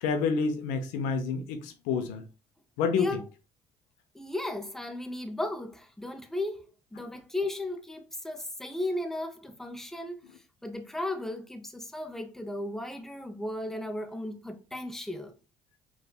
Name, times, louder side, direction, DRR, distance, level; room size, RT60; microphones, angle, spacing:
voice 1, 0.0-2.2 2.8-3.2 7.0-7.1, left 5 dB, 80° left, 0.6 m, -28 dB
voice 2, 3.0-3.3 4.1-6.6 6.9-10.2 10.6-15.3, left 1 dB, 5° left, 0.7 m, -35 dB
4.2 x 2.4 x 2.2 m
supercardioid pair, 70°, 13 cm